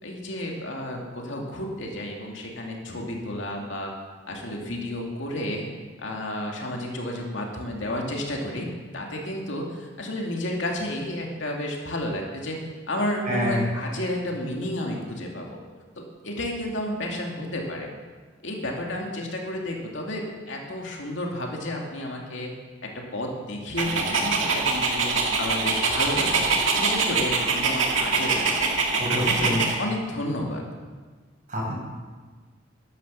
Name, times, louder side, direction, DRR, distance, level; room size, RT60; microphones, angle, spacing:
voice 1, 0.0-3.9 4.3-5.7 6.0-8.7 8.9-12.6 12.9-15.6 16.0-17.9 18.4-22.5 22.8-25.1 25.4-26.5 26.8-28.7 29.1-30.7, left 1 dB, 70° left, 0 dB, 2.4 m, -31 dB
voice 2, 13.2-13.6 29.0-29.6 31.5-31.7, equal, 40° right, -3 dB, 5.5 m, -26 dB
Dog, 23.8-29.7, right 4 dB, 80° right, 2.1 m, -24 dB
11.5 x 11.0 x 7.0 m, 1.4 s
head